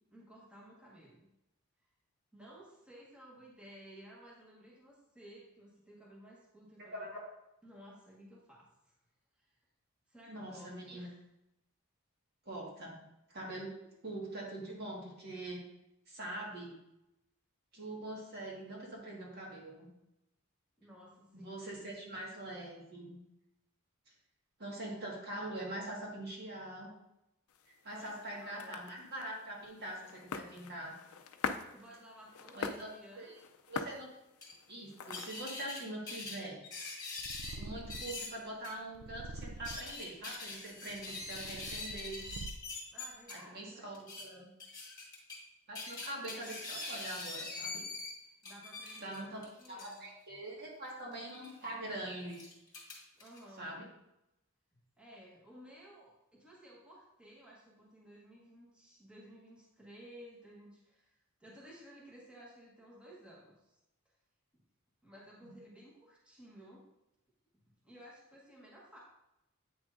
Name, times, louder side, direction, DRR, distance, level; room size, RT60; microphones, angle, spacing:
voice 1, 0.1-1.3 2.3-7.1 7.6-9.0 9.4-9.6 10.1-11.2 20.8-21.6 27.9-28.8 31.7-33.3 42.9-43.9 48.4-50.0 53.1-53.7 54.7-63.8 64.0-64.2 65.0-66.8 67.8-69.0, equal, 5° right, -5 dB, 1.1 m, -56 dB
voice 2, 6.8-7.2 10.3-11.1 12.4-13.0 13.3-13.7 14.0-15.6 16.1-16.7 17.7-19.9 21.3-23.1 24.6-26.9 27.7-30.9 32.5-32.9 33.1-33.3 33.7-34.1 34.7-36.6 37.5-42.2 43.3-44.5 45.7-47.8 49.0-49.4 49.7-52.5 53.6-53.9 65.4-65.5, right 1 dB, 50° right, -3 dB, 1.7 m, -43 dB
sound 1, 27.5-35.6, left 5 dB, 90° left, 0.5 m, -44 dB
sound 2, 34.4-34.5 35.1-35.8 36.1-37.6 37.9-38.3 38.6-38.7 39.4-43.3 43.9-44.2 44.6-45.4 45.8-48.1 48.4-50.0 51.3-51.5 52.3-53.4, left 3 dB, 15° left, 1.7 m, -43 dB
Purr, 37.2-38.3 38.9-40.0 40.7-42.8, right 3 dB, 70° right, 0.4 m, -46 dB
8.5 x 6.0 x 2.5 m, 0.88 s
head